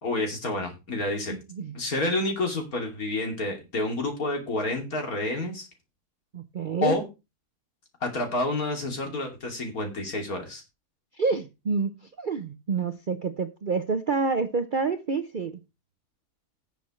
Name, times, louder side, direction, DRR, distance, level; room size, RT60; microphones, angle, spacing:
voice 1, 0.0-1.3 1.7-5.7 6.8-7.0 8.0-10.6, left 2 dB, 65° left, 3.2 m, -29 dB
voice 2, 1.3-1.8 6.3-7.0 11.1-15.6, right 4 dB, 45° right, 0.6 m, -28 dB
17.5 x 7.0 x 3.2 m
omnidirectional pair, 1.7 m